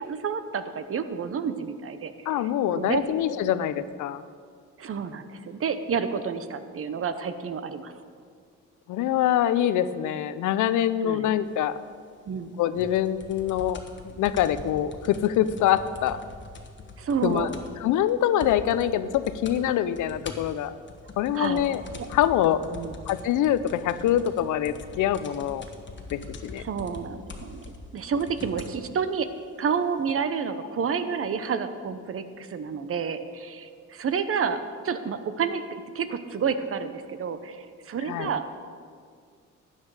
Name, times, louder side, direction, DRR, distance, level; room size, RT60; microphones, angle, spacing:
voice 1, 0.0-2.1 2.7-3.0 3.4-3.5 4.8-7.9 11.0-11.3 12.3-12.6 17.0-17.5 21.3-21.7 22.0-22.1 22.7-23.1 26.6-29.3 29.6-35.6 35.9-38.5, right 6 dB, 45° right, 10 dB, 0.8 m, -30 dB
voice 2, 2.3-4.2 8.9-11.8 12.6-13.8 14.2-16.2 17.2-17.5 17.8-20.7 21.2-21.8 22.1-22.6 23.1-25.7 26.1-26.6 38.1-38.3, left 11 dB, 80° left, 14 dB, 0.6 m, -24 dB
sound 1, 12.8-17.8 18.1-18.2 18.4-18.9 19.1-19.6 20.0-28.8 29.6-29.7, left 4 dB, 40° left, 1.3 m, -43 dB
12.5 x 9.1 x 4.8 m, 2.1 s
cardioid pair, 90°, 30 cm